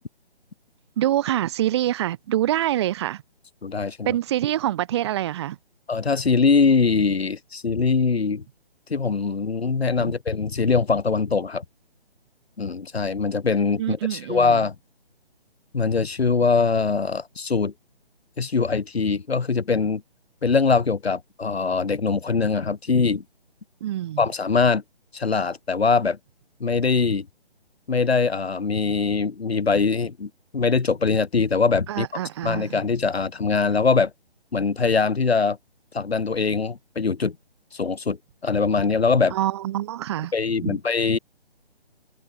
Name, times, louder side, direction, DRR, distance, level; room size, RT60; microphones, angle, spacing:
voice 1, 1.0-3.2 4.0-5.6 10.0-10.1 13.8-14.6 23.8-24.2 31.9-32.8 39.3-40.3 40.6-40.8, right 13 dB, 25° right, 1.6 m, -25 dB
voice 2, 3.6-4.1 5.9-8.4 8.9-11.6 12.6-14.7 15.7-17.7 18.4-20.0 20.4-23.2 24.2-24.8 25.1-26.2 26.6-27.3 27.9-32.1 32.4-34.1 34.5-35.6 35.9-37.4 37.7-38.2 38.4-39.3 40.3-41.2, left 4 dB, 75° left, 1.2 m, -22 dB
figure-of-eight pair, 145°, 32 cm